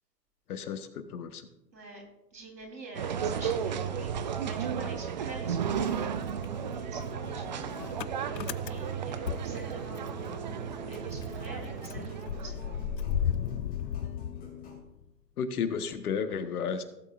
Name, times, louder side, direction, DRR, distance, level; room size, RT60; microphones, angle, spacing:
voice 1, 0.5-1.5 6.0-6.1 15.4-16.8, left 6 dB, 60° left, 9 dB, 1.3 m, -33 dB
voice 2, 1.7-2.0 2.3-6.1 6.7-7.9 8.3-10.5 10.7-12.8, right 2 dB, 90° right, 1 dB, 3.8 m, -46 dB
sound 1, 2.9-13.0, right 8 dB, 30° right, 0.4 m, -34 dB
Motor vehicle (road) / Engine starting, 4.1-5.3 5.6-10.3 10.6-10.7 10.9-15.0, left 9 dB, 80° left, 0.6 m, -36 dB
sound 2, 5.5-14.8, left 2 dB, 15° left, 2.7 m, -46 dB
17.0 x 8.5 x 2.5 m, 0.92 s
hypercardioid pair, 130°, 49 cm